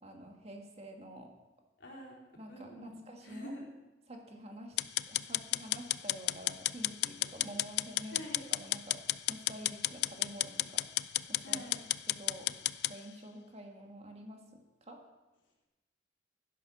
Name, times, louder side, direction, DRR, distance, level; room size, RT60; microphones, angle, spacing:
voice 1, 0.0-1.3 2.4-3.5 4.1-4.8 5.1-8.2 8.5-9.0 9.3-10.9 11.3-11.6 12.1-12.5 12.9-14.4 14.8-15.0, equal, 35° right, 2 dB, 1.8 m, -48 dB
voice 2, 1.8-2.2 2.5-3.6 8.1-8.5 11.4-11.8, equal, 90° left, -2 dB, 3.8 m, -46 dB
sound 1, 4.8-12.9, left 15 dB, 60° left, 0.4 m, -33 dB
11.0 x 10.5 x 6.1 m, 1.1 s
head